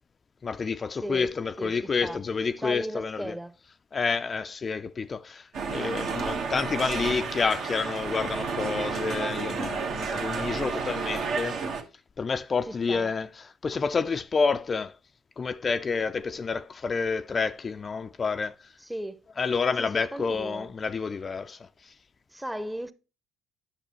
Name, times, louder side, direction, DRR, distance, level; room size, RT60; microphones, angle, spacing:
voice 1, 0.4-3.4 3.9-11.6 12.2-15.0 15.4-18.8 19.4-22.0, left 5 dB, 35° left, 0.4 m, -29 dB
voice 2, 2.6-3.5 12.9-13.1 18.9-19.3 19.8-20.7 22.3-22.9, right 1 dB, 5° right, 0.8 m, -36 dB
sound 1, 5.5-11.8, right 5 dB, 60° right, 1.4 m, -31 dB
10.0 x 6.5 x 3.1 m
hypercardioid pair, 55°, 0 cm